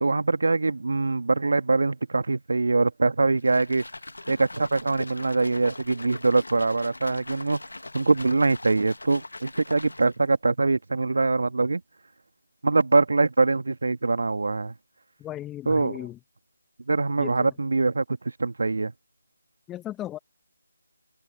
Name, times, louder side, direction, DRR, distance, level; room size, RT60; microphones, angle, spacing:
voice 1, 0.0-3.8 4.3-7.6 7.9-11.8 12.6-14.7 15.6-16.0 16.9-18.0 18.4-18.9, right 3 dB, 60° right, 1.7 m, -23 dB
sound 1, 3.4-10.3, left 2 dB, 70° left, 1.5 m, -41 dB
voice 2, 15.2-16.2 17.2-17.5 19.7-20.2, left 13 dB, 10° left, 1.1 m, -36 dB
figure-of-eight pair, 155°, 0 cm